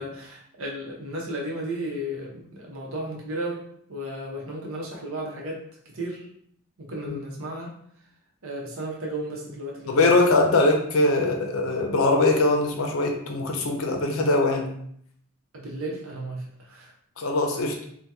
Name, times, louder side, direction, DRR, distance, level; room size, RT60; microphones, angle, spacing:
voice 1, 0.0-3.6 3.9-5.6 5.8-6.3 6.8-7.7 8.4-10.0 15.5-16.9, right 1 dB, 65° right, -2 dB, 0.8 m, -34 dB
voice 2, 9.9-14.7 17.2-17.8, left 2 dB, 70° left, 3 dB, 0.5 m, -22 dB
2.8 x 2.2 x 3.5 m, 0.66 s
head